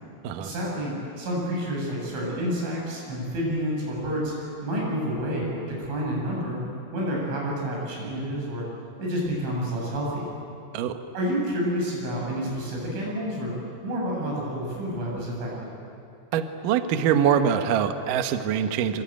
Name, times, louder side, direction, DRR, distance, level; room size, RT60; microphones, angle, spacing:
voice 1, 0.4-6.6 6.9-8.7 9.0-10.3 11.2-13.5 13.8-15.7, equal, 65° right, -3 dB, 10.5 m, -29 dB
voice 2, 16.3-19.0, right 8 dB, 85° right, 7 dB, 1.9 m, -24 dB
27.0 x 24.5 x 9.0 m, 2.6 s
omnidirectional pair, 5.9 m